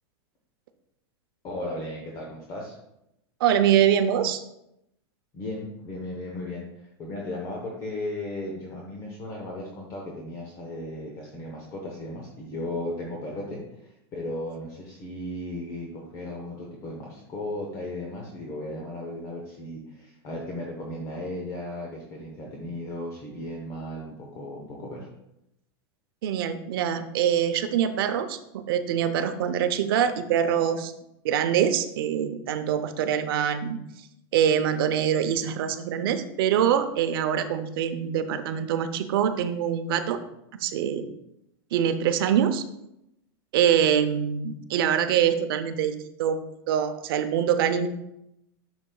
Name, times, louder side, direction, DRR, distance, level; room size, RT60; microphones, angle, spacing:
voice 1, 1.4-2.8 5.3-25.1, left 1 dB, 30° left, -1 dB, 1.0 m, -36 dB
voice 2, 3.4-4.4 26.2-30.9 31.2-33.8 34.3-40.2 40.6-41.1 41.7-42.6 43.5-46.4 46.7-47.9, right 9 dB, 65° right, 9 dB, 0.7 m, -24 dB
8.6 x 6.2 x 2.3 m, 0.84 s
supercardioid pair, 160°, 13 cm